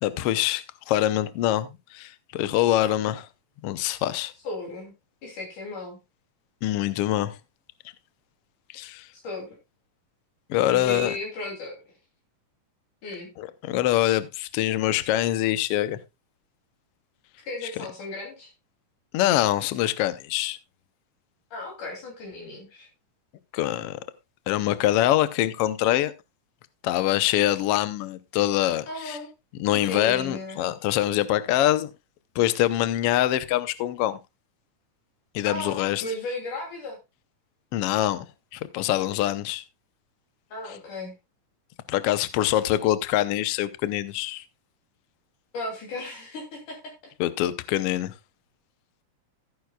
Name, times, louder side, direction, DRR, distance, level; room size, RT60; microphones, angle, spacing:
voice 1, 0.0-3.3 3.6-4.3 6.6-7.4 8.7-9.1 10.5-11.2 13.4-16.0 17.6-17.7 19.1-20.6 23.5-24.0 24.5-26.1 26.8-29.2 29.6-31.9 32.3-34.2 35.3-36.0 37.7-38.2 38.5-39.6 41.9-44.4 47.2-48.1, left 13 dB, 90° left, 1.3 m, -24 dB
voice 2, 4.4-4.9 5.2-6.0 9.2-9.6 10.7-11.8 13.0-13.3 17.5-18.5 21.5-22.9 28.9-29.3 29.7-30.6 35.5-37.0 40.5-41.2 45.5-46.9, left 2 dB, 70° left, 4.4 m, -35 dB
15.0 x 9.5 x 2.3 m
omnidirectional pair, 3.7 m